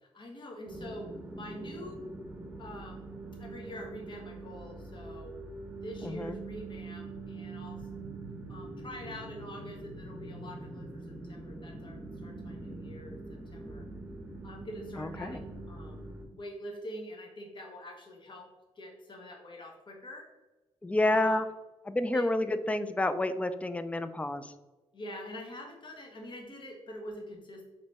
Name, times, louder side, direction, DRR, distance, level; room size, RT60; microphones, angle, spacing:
voice 1, 0.0-2.0 2.6-3.1 3.4-5.4 5.8-7.8 8.5-13.9 14.4-16.0 16.3-18.5 18.8-20.3 21.0-21.4 22.1-22.3 24.9-27.7, left 1 dB, 45° left, 1 dB, 1.0 m, -45 dB
sound 1, 0.7-16.3, right 2 dB, 15° right, 0.8 m, -43 dB
voice 2, 6.0-6.4 15.0-15.4 20.8-21.5 21.8-24.5, left 1 dB, 10° left, 11 dB, 0.3 m, -29 dB
3.8 x 3.1 x 3.4 m, 1.1 s
cardioid pair, 75°, 11 cm